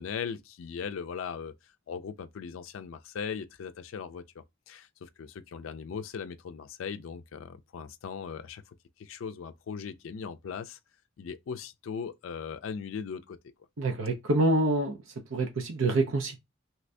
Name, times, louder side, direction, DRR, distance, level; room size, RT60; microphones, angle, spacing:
voice 1, 0.0-10.8 11.2-13.4, left 6 dB, 85° left, 0.4 m, -39 dB
voice 2, 13.8-15.0 15.3-16.4, right 2 dB, 80° right, 0.6 m, -26 dB
2.9 x 2.6 x 3.2 m
head